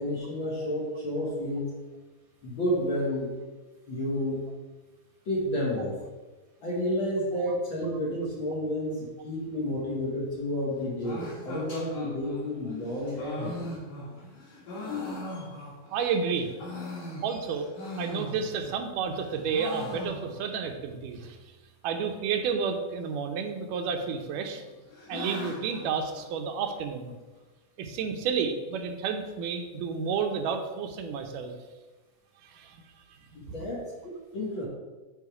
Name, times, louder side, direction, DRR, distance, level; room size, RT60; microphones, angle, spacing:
voice 1, 0.0-1.7 2.4-3.3 3.9-4.5 5.3-6.0 6.6-13.7 15.3-15.4 17.1-17.2 33.4-34.7, left 1 dB, 45° left, -5 dB, 1.9 m, -31 dB
sound 1, 11.0-16.0 16.4-18.8 19.1-20.6 20.9-21.0 21.2-21.3 22.0-22.4 23.4-24.0 24.4-26.8, left 2 dB, 85° left, 3.7 m, -40 dB
voice 2, 15.9-16.5 17.2-17.7 18.0-21.4 21.8-24.6 25.1-27.1 27.8-31.6 32.4-32.8 33.6-33.7, right 6 dB, 85° right, 5 dB, 2.3 m, -31 dB
6.9 x 5.7 x 4.7 m, 1.2 s
omnidirectional pair, 3.7 m